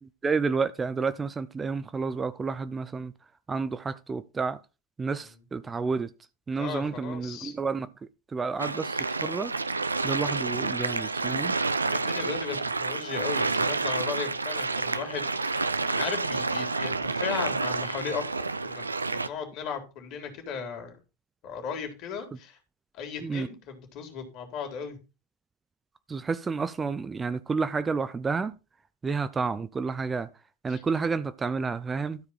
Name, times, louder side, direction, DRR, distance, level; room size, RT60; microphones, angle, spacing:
voice 1, 0.0-3.1 3.5-4.6 5.0-6.1 6.5-7.9 8.3-9.5 10.0-11.5 23.2-23.5 26.1-28.6 29.0-30.3 30.6-32.2, right 4 dB, 20° right, 0.6 m, -30 dB
voice 2, 6.5-7.5 11.9-20.9 21.4-22.6 22.9-25.0 30.7-30.8, left 6 dB, 50° left, 3.2 m, -36 dB
sound 1, 8.6-19.3, right 3 dB, 90° right, 0.5 m, -29 dB
13.0 x 4.9 x 5.5 m
figure-of-eight pair, 80°, 0 cm